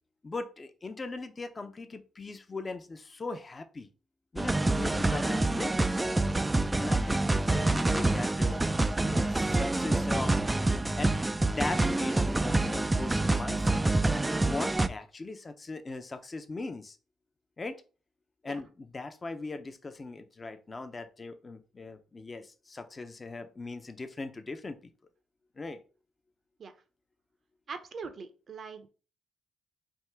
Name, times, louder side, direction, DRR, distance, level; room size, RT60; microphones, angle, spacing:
voice 1, 0.2-3.9 4.3-6.2 6.8-8.6 9.0-10.4 10.9-13.8 14.4-17.0 17.6-17.8 18.4-24.9 25.6-25.8, left 3 dB, 30° left, 8 dB, 0.6 m, -39 dB
sound 1, 4.4-14.9, right 2 dB, 15° right, 0.3 m, -27 dB
voice 2, 27.7-28.9, right 5 dB, 50° right, 9 dB, 0.7 m, -42 dB
3.6 x 2.6 x 4.4 m, 0.35 s
cardioid pair, 90°, 0 cm